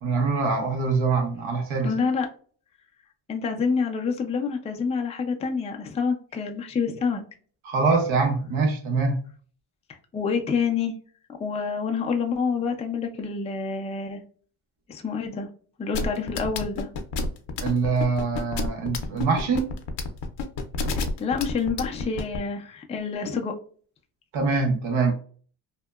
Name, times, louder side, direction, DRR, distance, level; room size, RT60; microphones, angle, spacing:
voice 1, 0.0-1.9 7.6-9.2 17.6-19.7 24.3-25.1, right 4 dB, 80° right, 1.1 m, -24 dB
voice 2, 1.8-2.3 3.3-7.2 10.1-10.9 11.4-14.2 14.9-15.5 15.8-16.9 21.2-23.5, left 5 dB, 15° left, 0.3 m, -27 dB
sound 1, 15.9-22.4, left 3 dB, 60° left, 0.6 m, -29 dB
2.8 x 2.1 x 2.2 m
cardioid pair, 115°, 47 cm